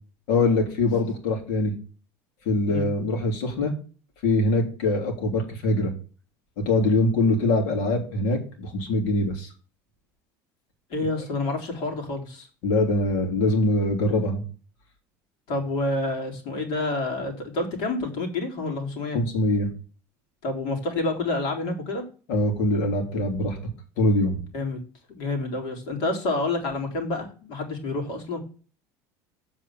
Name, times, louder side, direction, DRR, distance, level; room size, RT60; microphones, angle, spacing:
voice 1, 0.3-1.7 2.4-3.7 4.2-5.9 6.6-9.5 12.6-14.4 19.1-19.7 22.3-23.6 24.0-24.4, left 2 dB, 75° left, 4 dB, 3.4 m, -23 dB
voice 2, 10.9-12.5 15.5-19.2 20.4-22.0 24.5-24.8 25.1-28.4, left 2 dB, 60° left, 3 dB, 3.8 m, -28 dB
8.1 x 4.9 x 7.3 m, 0.37 s
cardioid pair, 155°, 9 cm